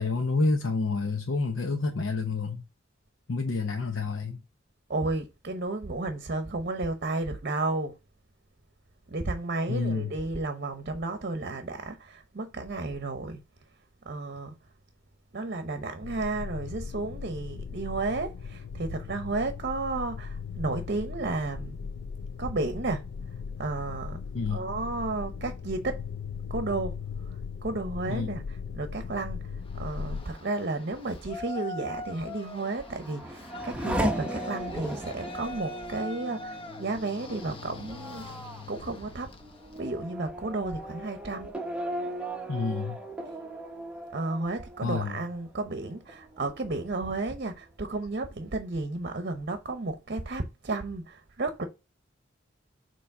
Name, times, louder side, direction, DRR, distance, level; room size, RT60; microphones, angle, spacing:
voice 1, 0.0-2.6 3.3-4.4 9.7-10.1 24.3-24.7 28.1-28.4 42.5-43.0 44.8-45.2, left 3 dB, 80° left, 0.8 m, -28 dB
voice 2, 4.9-8.0 9.1-13.4 14.0-14.5 15.3-21.8 22.4-23.0 23.6-24.2 24.5-26.0 26.5-27.0 27.3-38.3 38.7-39.3 39.8-41.5 44.1-51.6, right 2 dB, 50° right, 0.8 m, -32 dB
sound 1, 16.0-30.3, left 6 dB, 60° left, 0.4 m, -38 dB
Yell, 29.7-39.9, left 1 dB, 30° left, 0.8 m, -42 dB
Race car auto racing / Accelerating revving vroom, 32.5-45.7 46.1-46.8, right 1 dB, 5° right, 0.8 m, -37 dB
7.0 x 3.0 x 5.3 m
head